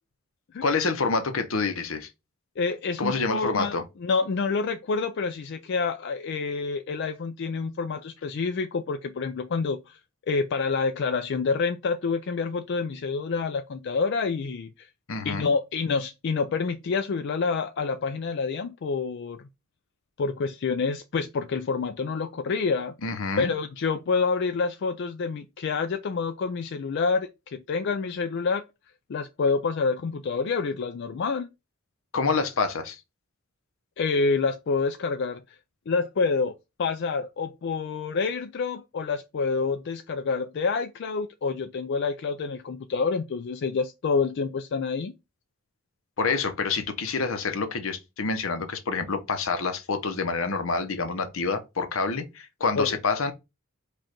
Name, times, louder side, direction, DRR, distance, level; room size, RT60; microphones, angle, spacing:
voice 1, 0.6-2.1 3.0-3.8 15.1-15.5 23.0-23.5 32.1-33.0 46.2-53.3, left 4 dB, 75° left, 0.8 m, -27 dB
voice 2, 2.6-10.0 10.3-14.9 15.2-19.4 20.2-22.9 23.4-28.6 29.1-31.5 34.0-35.6 35.9-36.5 36.8-45.1 52.8-52.9, left 4 dB, 55° left, 0.4 m, -27 dB
5.1 x 2.4 x 4.3 m
head